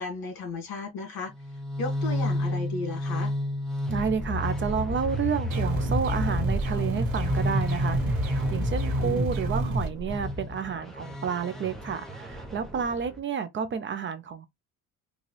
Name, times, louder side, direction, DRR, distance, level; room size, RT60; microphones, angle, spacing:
voice 1, 0.0-1.3 1.8-3.3 9.0-9.3, left 3 dB, 70° left, 2.2 m, -34 dB
sound 1, 1.3-13.2, left 1 dB, ahead, 0.8 m, -32 dB
voice 2, 3.9-14.5, right 7 dB, 35° right, 0.5 m, -30 dB
sound 2, 5.5-9.9, right 2 dB, 70° right, 1.6 m, -28 dB
4.0 x 2.3 x 3.2 m
cardioid pair, 160°, 36 cm